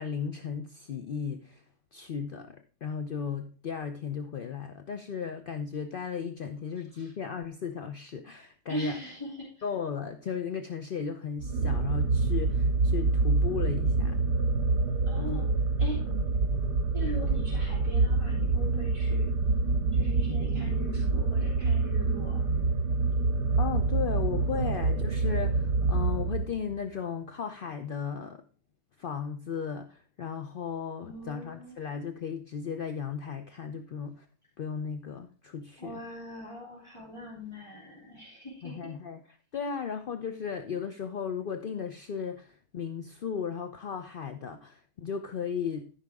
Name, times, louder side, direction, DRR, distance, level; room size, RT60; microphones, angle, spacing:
voice 1, 0.0-1.6 1.9-9.0 9.6-14.2 15.2-15.7 23.6-28.4 29.0-34.3 34.6-36.0 38.6-45.9, left 7 dB, 55° left, 0.6 m, -36 dB
voice 2, 8.7-9.6 15.1-15.5 15.8-16.0 16.9-19.3 19.9-22.4 31.0-31.7 35.8-38.9, left 1 dB, 20° left, 3.1 m, -40 dB
sound 1, 11.4-26.7, right 3 dB, 60° right, 1.8 m, -26 dB
13.5 x 5.9 x 3.5 m
omnidirectional pair, 1.7 m